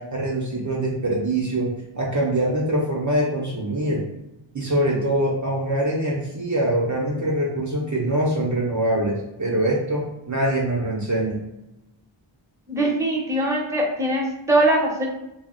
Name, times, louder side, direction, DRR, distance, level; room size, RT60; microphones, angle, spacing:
voice 1, 0.0-4.1 4.5-11.4, right 1 dB, 40° right, -3 dB, 0.6 m, -24 dB
voice 2, 12.7-15.1, right 1 dB, 5° right, -3 dB, 0.7 m, -21 dB
2.3 x 2.0 x 3.7 m, 0.91 s
wide cardioid pair, 80°, 48 cm